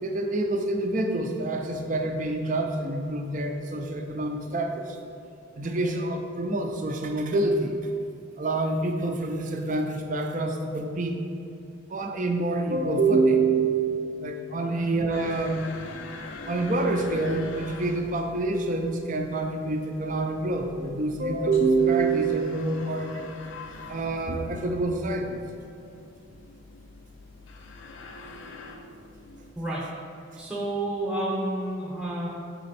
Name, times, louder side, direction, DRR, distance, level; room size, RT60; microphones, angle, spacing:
voice 1, 0.0-5.0 5.6-7.8 8.4-11.2 11.9-15.7 16.5-23.3 23.9-25.4, right 3 dB, 40° right, 4 dB, 0.5 m, -26 dB
sound 1, 15.1-29.5, left 3 dB, 85° left, 0.5 m, -44 dB
voice 2, 30.4-32.3, right 1 dB, 5° right, -5 dB, 0.8 m, -30 dB
6.2 x 4.2 x 4.1 m, 2.7 s
head